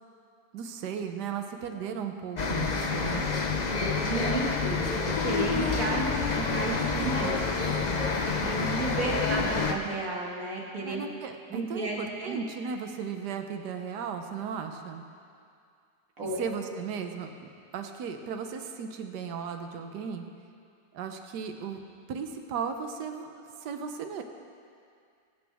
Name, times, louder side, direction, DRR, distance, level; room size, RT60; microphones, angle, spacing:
voice 1, 0.5-3.3 10.8-15.0 16.2-17.3 17.7-20.2 20.9-21.8 22.1-24.2, right 6 dB, 75° right, 5 dB, 1.4 m, -36 dB
sound 1, 2.4-9.7, left 4 dB, 50° left, 0.5 m, -28 dB
voice 2, 4.0-7.4 8.4-11.0 11.5-12.3 16.2-16.4, right 3 dB, 50° right, -3 dB, 2.3 m, -33 dB
22.5 x 8.2 x 3.5 m, 2.3 s
omnidirectional pair, 1.8 m